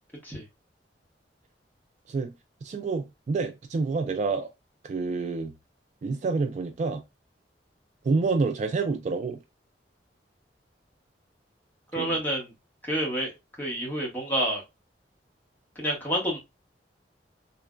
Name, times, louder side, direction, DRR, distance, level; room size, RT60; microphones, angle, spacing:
voice 1, 2.6-4.5 4.8-5.5 6.0-7.0 8.0-9.4 12.0-12.2, right 4 dB, 40° right, 0.3 m, -28 dB
voice 2, 11.9-12.5 12.8-13.3 13.6-14.6 15.8-16.4, equal, 10° left, 1.0 m, -28 dB
3.1 x 2.0 x 2.3 m
head